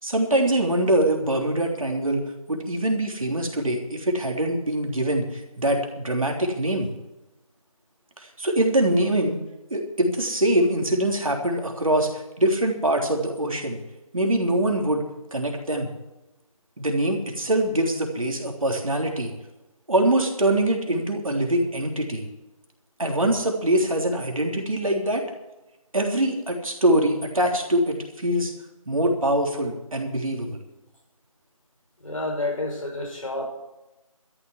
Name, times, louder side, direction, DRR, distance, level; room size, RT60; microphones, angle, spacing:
voice 1, 0.0-6.9 8.2-9.4 9.7-13.8 14.1-15.9 16.8-19.3 19.9-22.2 23.0-25.2 25.9-28.5 28.9-30.6, right 1 dB, 70° right, 2 dB, 3.4 m, -23 dB
voice 2, 32.0-33.5, left 2 dB, 65° left, 2 dB, 5.2 m, -29 dB
13.0 x 7.9 x 9.7 m, 0.99 s
figure-of-eight pair, 165°, 18 cm